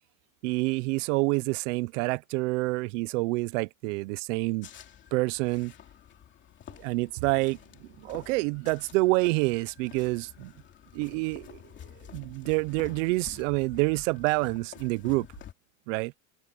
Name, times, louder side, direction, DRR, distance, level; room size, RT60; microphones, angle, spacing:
voice 1, 0.4-4.7 5.1-5.7 6.8-10.5 10.9-11.6 12.1-15.3 15.9-16.1, right 24 dB, 60° right, 0.7 m, -27 dB
sound 1, 4.6-15.5, left 10 dB, 25° left, 2.7 m, -50 dB
cardioid pair, 170°, 43 cm